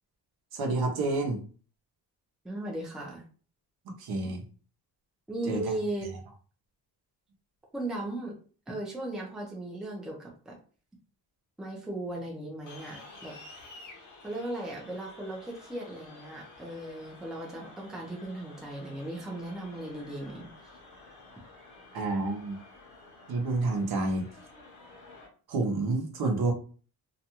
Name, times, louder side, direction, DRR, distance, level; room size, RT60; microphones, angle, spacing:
voice 1, 0.5-1.4 3.9-4.4 5.4-5.7 21.9-22.6 23.3-24.3 25.5-26.5, right 3 dB, 70° right, 2 dB, 0.8 m, -29 dB
voice 2, 2.4-3.2 5.3-6.1 7.7-8.3 8.7-10.6 11.6-13.3 14.2-20.5, right 1 dB, ahead, -1 dB, 0.5 m, -37 dB
sound 1, 12.7-25.3, left 3 dB, 50° left, 0.8 m, -51 dB
2.5 x 2.2 x 2.9 m, 0.40 s
wide cardioid pair, 165°, 40 cm